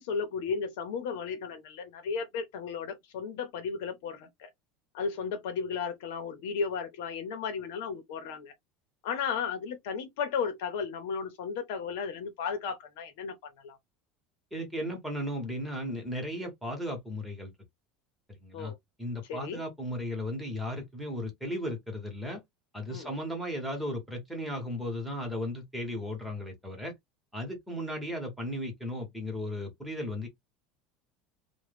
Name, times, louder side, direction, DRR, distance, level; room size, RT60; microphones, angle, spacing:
voice 1, 0.0-4.5 4.9-8.5 9.0-13.8 18.5-18.7 19.3-19.6 22.9-23.1, left 6 dB, 75° left, 0.8 m, -34 dB
voice 2, 14.5-17.5 18.3-18.7 19.0-22.4 22.7-26.9 27.3-30.3, left 1 dB, 5° right, 1.1 m, -35 dB
3.0 x 2.2 x 3.3 m
cardioid pair, 170°, 0 cm